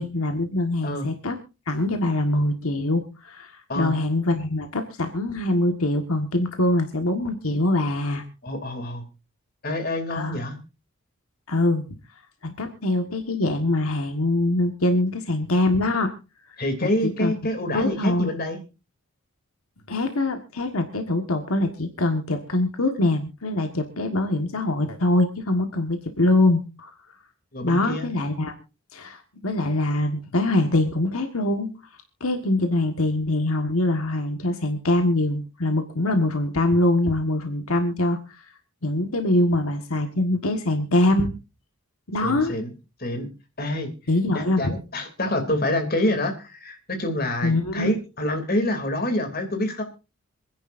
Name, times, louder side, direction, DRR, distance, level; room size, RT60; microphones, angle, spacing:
voice 1, 0.0-1.4 1.7-8.2 10.1-10.4 11.5-11.9 12.4-16.1 16.8-17.3 17.7-18.3 19.9-26.9 27.6-28.5 28.9-31.7 32.2-38.4 38.8-41.3 42.1-42.5 44.1-44.8 47.4-47.9, left 2 dB, 80° left, 5 dB, 1.6 m, -23 dB
voice 2, 8.4-9.0 9.6-10.6 16.6-18.6 27.5-28.1 42.2-42.7 43.0-43.3 43.6-43.9 44.3-49.8, left 1 dB, 45° left, 5 dB, 2.9 m, -27 dB
26.5 x 10.5 x 2.6 m, 0.30 s
head